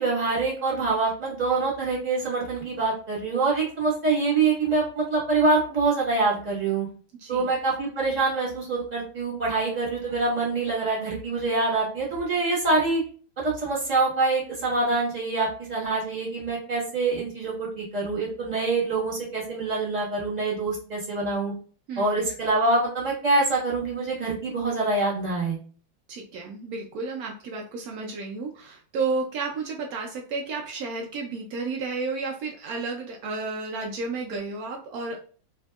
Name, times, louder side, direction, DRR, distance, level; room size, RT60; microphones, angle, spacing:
voice 1, 0.0-6.9 7.3-13.0 13.4-21.5 22.0-25.6, right 3 dB, 25° right, -6 dB, 1.4 m, -25 dB
voice 2, 21.9-22.3 26.1-35.3, right 3 dB, 85° right, 1 dB, 0.8 m, -32 dB
3.4 x 2.7 x 2.3 m, 0.42 s
omnidirectional pair, 2.1 m